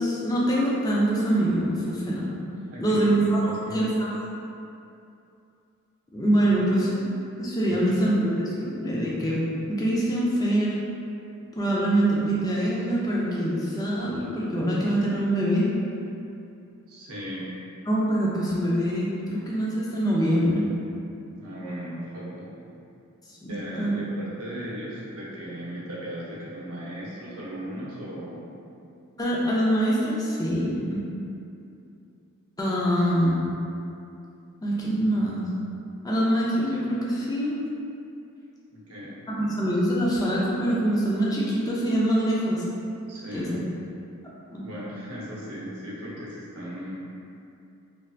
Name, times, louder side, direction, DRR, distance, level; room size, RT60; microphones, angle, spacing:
voice 1, 0.0-2.3 2.8-3.4 3.7-4.2 6.1-7.1 7.4-9.4 9.7-10.8 11.6-15.7 17.9-20.7 23.3-23.9 29.2-31.0 32.6-33.4 34.6-35.4 36.0-37.6 39.3-42.6 43.3-43.6 44.5-44.7, right 1 dB, 15° left, -6 dB, 0.4 m, -24 dB
voice 2, 2.7-3.1 3.4-3.9 6.5-6.6 7.7-8.0 16.9-17.5 21.4-22.5 23.5-28.6 38.7-39.2 43.1-43.5 44.6-47.1, equal, 85° right, -6 dB, 0.7 m, -37 dB
3.2 x 2.6 x 2.3 m, 2.6 s
head